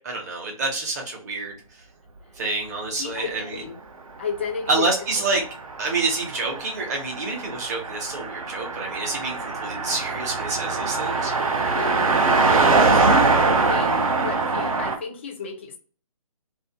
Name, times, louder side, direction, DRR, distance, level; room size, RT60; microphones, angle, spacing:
voice 1, 0.0-1.6 2.4-3.6 4.7-5.4 5.8-11.3, right 3 dB, 30° right, 0 dB, 0.8 m, -27 dB
voice 2, 3.0-3.8 4.2-4.9 9.8-10.0 11.7-12.1 12.5-15.8, left 5 dB, 20° left, 2 dB, 0.3 m, -33 dB
Car passing by, 4.8-15.0, right 3 dB, 70° right, 0.6 m, -23 dB
2.5 x 2.1 x 2.7 m, 0.39 s
figure-of-eight pair, 145°, 19 cm